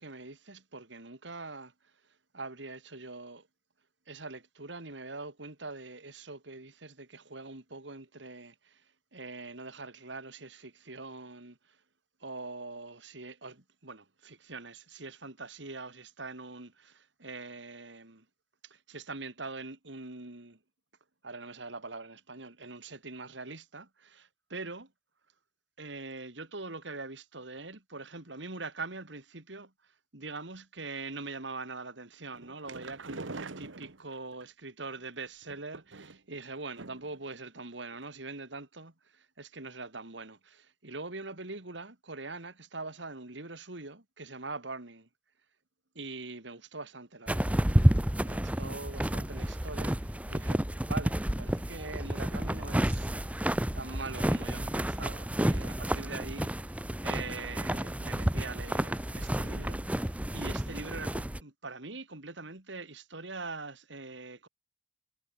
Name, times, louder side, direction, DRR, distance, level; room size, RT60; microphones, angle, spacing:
voice 1, 0.0-1.7 2.3-3.5 4.1-8.8 9.1-11.6 12.2-18.2 18.6-20.6 21.2-24.9 25.8-29.7 30.1-45.1 45.9-47.6 48.2-53.1 53.7-56.5 57.0-64.5, right 3 dB, 75° right, 2.6 m, -43 dB
sound 1, 32.3-34.4 35.4-36.3 36.8-37.2 37.5-37.6 37.9-38.0, right 3 dB, 90° right, 1.4 m, -44 dB
sound 2, 47.3-61.4, equal, 5° right, 0.7 m, -30 dB
head